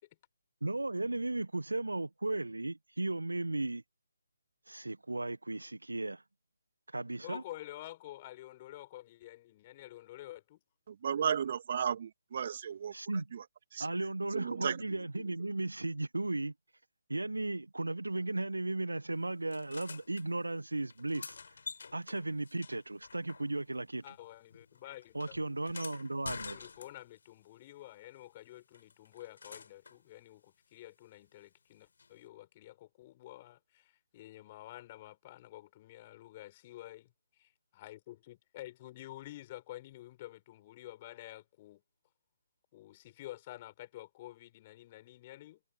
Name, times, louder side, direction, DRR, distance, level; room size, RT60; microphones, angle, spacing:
voice 1, 0.6-3.8 4.7-6.2 6.9-7.4 12.9-13.2 13.8-16.5 17.1-21.4 21.9-24.0 25.1-26.6, right 2 dB, 75° right, 1.5 m, -35 dB
voice 2, 7.2-10.6 24.0-25.4 26.5-41.8 42.7-45.6, left 15 dB, 25° left, 4.4 m, -49 dB
voice 3, 10.9-13.5 13.7-13.9 14.3-15.3, right 8 dB, 40° right, 2.3 m, -35 dB
sound 1, 19.5-20.3 20.9-23.8 24.1-27.3 28.7-30.0 32.0-32.1, left 5 dB, 50° left, 6.3 m, -48 dB
figure-of-eight pair, 145°, 0 cm